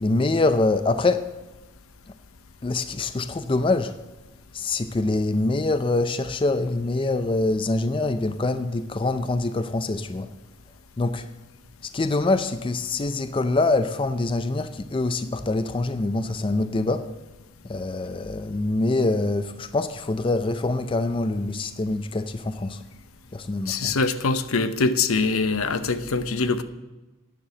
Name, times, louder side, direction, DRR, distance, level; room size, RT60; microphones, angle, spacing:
voice 1, 0.0-1.3 2.1-2.2 2.6-4.0 4.5-10.3 11.0-11.3 11.8-17.1 17.6-22.8 23.3-24.0, left 2 dB, 25° left, 10 dB, 0.4 m, -25 dB
voice 2, 23.7-26.6, left 4 dB, 75° left, 11 dB, 0.8 m, -23 dB
9.8 x 6.7 x 7.6 m, 1.1 s
head